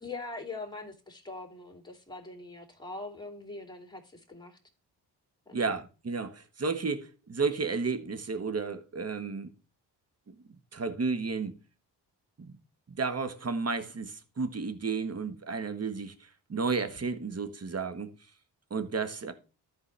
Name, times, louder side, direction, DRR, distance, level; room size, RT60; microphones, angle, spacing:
voice 1, 0.0-4.6 5.5-5.7, left 3 dB, 10° left, 2.7 m, -42 dB
voice 2, 5.5-9.5 10.7-11.5 12.4-12.6 12.9-18.1 18.7-19.3, right 4 dB, 30° right, 1.4 m, -32 dB
13.5 x 4.8 x 3.3 m
hypercardioid pair, 40°, 50 cm